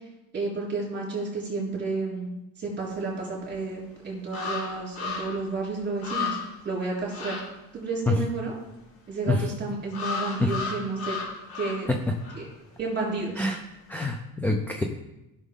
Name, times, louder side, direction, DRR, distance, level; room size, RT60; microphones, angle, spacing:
voice 1, 0.3-2.3 2.6-6.4 6.7-7.4 7.7-8.5 9.1-11.2 11.6-11.9 12.4-12.5 12.8-13.5, right 3 dB, 30° right, -3 dB, 3.4 m, -31 dB
sound 1, 3.4-3.5 4.3-5.5 5.8-5.9 6.0-6.6 7.1-7.4 9.9-11.9 12.2-12.4, left 4 dB, 80° left, 3.3 m, -33 dB
voice 2, 13.9-14.8, left 2 dB, 5° left, 3 dB, 0.5 m, -25 dB
15.0 x 6.2 x 3.7 m, 0.93 s
cardioid pair, 160°, 36 cm